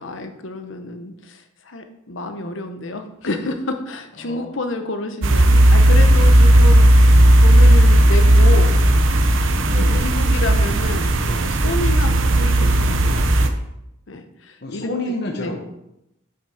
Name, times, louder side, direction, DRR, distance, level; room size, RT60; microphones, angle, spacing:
voice 1, 0.0-8.8 9.2-9.3 9.8-13.6 14.1-15.6, left 2 dB, 75° left, 7 dB, 0.9 m, -30 dB
voice 2, 4.2-4.5 9.6-10.2 12.0-12.4 14.6-15.6, left 1 dB, 55° left, 1 dB, 1.1 m, -29 dB
sound 1, 5.2-13.5, right 1 dB, 80° right, 0.8 m, -14 dB
7.3 x 6.1 x 4.9 m, 0.84 s
head